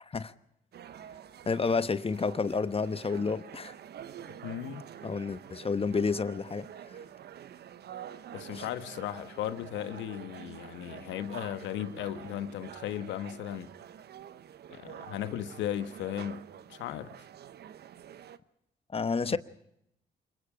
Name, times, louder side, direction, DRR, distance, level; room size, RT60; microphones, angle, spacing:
sound 1, 0.7-18.4, right 9 dB, 60° right, 1.0 m, -47 dB
voice 1, 1.5-3.7 5.0-6.7 8.5-8.6 18.9-19.4, left 4 dB, 30° left, 1.1 m, -30 dB
voice 2, 4.4-4.9 8.3-13.7 14.7-17.2 19.3-19.4, left 11 dB, 80° left, 1.3 m, -36 dB
25.5 x 22.0 x 5.0 m
supercardioid pair, 60°, 19 cm